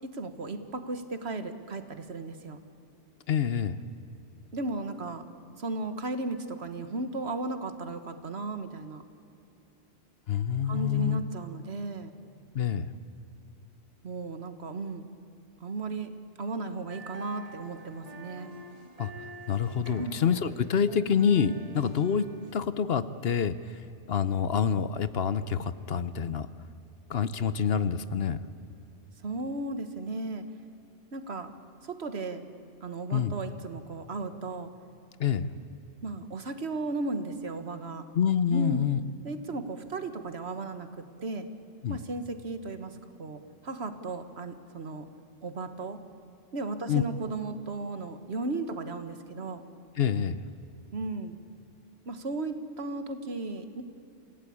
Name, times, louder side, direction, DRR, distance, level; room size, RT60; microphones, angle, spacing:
voice 1, 0.0-2.6 4.5-5.2 5.6-9.0 10.6-12.1 14.0-15.1 15.6-16.1 16.4-18.5 20.0-20.2 29.2-30.4 31.1-31.5 31.8-32.5 32.8-34.7 36.0-38.1 38.5-38.9 39.2-40.9 41.2-41.5 41.9-45.1 45.4-46.0 46.5-49.6 50.9-51.4 52.0-53.8, right 3 dB, 65° right, 9 dB, 1.6 m, -35 dB
voice 2, 3.3-3.8 10.3-11.2 12.5-12.9 19.0-19.1 19.5-22.3 22.5-23.6 24.1-26.5 27.1-28.4 33.1-33.3 35.2-35.5 38.1-39.0 41.8-42.0 46.9-47.0 50.0-50.4, left 7 dB, 60° left, 14 dB, 1.0 m, -27 dB
sound 1, 16.9-22.5, right 1 dB, 35° right, 1.7 m, -45 dB
27.5 x 17.0 x 8.6 m, 2.7 s
omnidirectional pair, 1.2 m